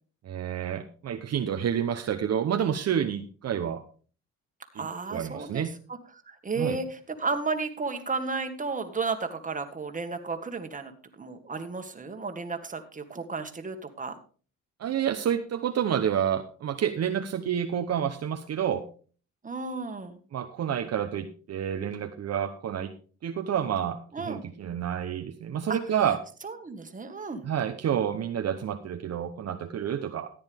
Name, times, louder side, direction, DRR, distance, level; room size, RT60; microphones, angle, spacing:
voice 1, 0.2-3.8 4.7-5.7 6.6-6.8 14.8-18.9 20.3-22.9 23.2-26.2 27.4-30.3, right 9 dB, 55° right, 6 dB, 0.9 m, -29 dB
voice 2, 4.7-5.7 6.3-14.1 19.4-20.2 24.1-24.4 25.7-25.8 26.4-27.4, right 4 dB, 25° right, 6 dB, 1.8 m, -33 dB
14.0 x 9.7 x 3.6 m, 0.40 s
cardioid pair, 90°, 30 cm